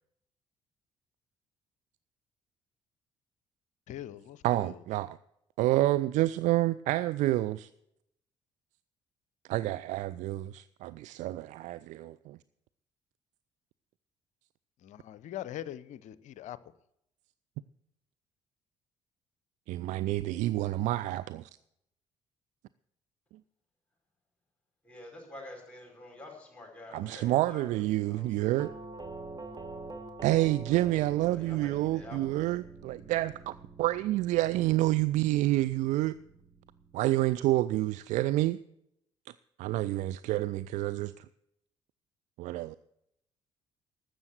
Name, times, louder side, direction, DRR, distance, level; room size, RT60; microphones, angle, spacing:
voice 1, 3.9-4.8 14.8-16.6, left 12 dB, 50° left, 0.6 m, -42 dB
voice 2, 4.4-5.2 5.6-7.7 9.5-12.4 19.7-21.5 26.9-28.7 30.2-33.5 33.8-36.2 36.9-38.6 39.6-41.2 42.4-42.8, right 16 dB, 50° right, 0.4 m, -28 dB
voice 3, 24.8-28.6 30.7-32.4, left 1 dB, 10° left, 5.1 m, -49 dB
Doorbell, 28.6-37.4, right 3 dB, 25° right, 1.6 m, -46 dB
12.5 x 7.8 x 7.9 m
figure-of-eight pair, 45°, 15 cm